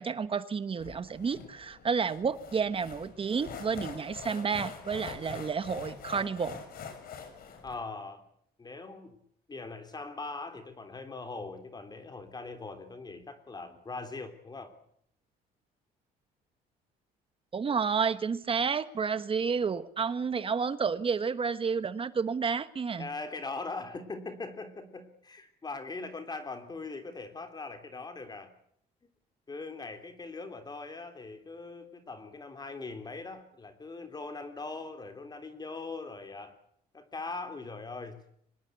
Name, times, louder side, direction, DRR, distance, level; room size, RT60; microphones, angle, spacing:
voice 1, 0.0-6.6 17.5-23.1, right 6 dB, 30° right, 13 dB, 1.3 m, -30 dB
sound 1, 0.8-7.7, left 6 dB, 60° left, 6.5 m, -44 dB
voice 2, 7.6-8.2 8.6-9.2 9.5-14.7 23.0-28.5 29.5-36.6 36.9-38.2, left 3 dB, 25° left, 8 dB, 3.4 m, -41 dB
25.0 x 20.0 x 8.2 m, 0.67 s
cardioid pair, 110°, 17 cm